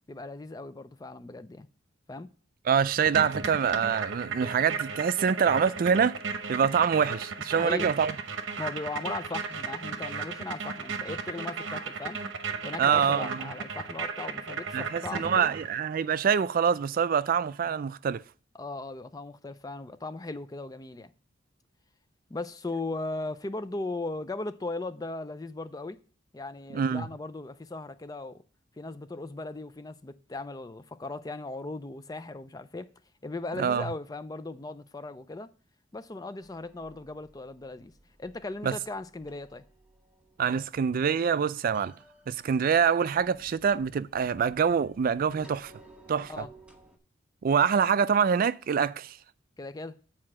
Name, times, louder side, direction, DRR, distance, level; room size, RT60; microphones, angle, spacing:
voice 1, 0.1-1.7 2.1-2.3 7.5-7.9 8.6-12.2 12.6-15.5 18.5-21.1 22.3-26.0 26.3-28.4 28.8-32.9 33.2-35.5 35.9-37.9 38.2-39.6 46.3-46.5 49.6-50.0, left 2 dB, 20° left, 0.4 m, -37 dB
voice 2, 2.7-6.2 6.5-8.1 12.8-13.5 14.7-18.2 26.7-27.1 33.6-33.9 38.6-38.8 40.4-41.9 42.3-45.7 46.1-46.5 47.4-49.2, right 7 dB, 45° right, 0.3 m, -25 dB
sound 1, 3.1-15.9, right 5 dB, 70° right, 0.9 m, -35 dB
sound 2, 36.4-47.0, right 2 dB, 5° right, 0.9 m, -57 dB
7.8 x 4.4 x 6.1 m
head